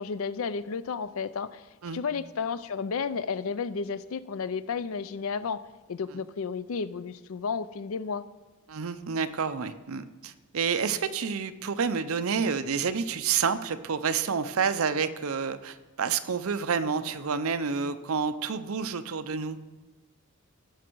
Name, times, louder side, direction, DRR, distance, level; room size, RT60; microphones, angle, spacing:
voice 1, 0.0-1.6 1.9-5.6 5.9-8.2, left 5 dB, 65° left, 15 dB, 0.5 m, -32 dB
voice 2, 8.7-19.6, right 6 dB, 65° right, 11 dB, 0.6 m, -29 dB
18.0 x 6.1 x 4.6 m, 1.2 s
head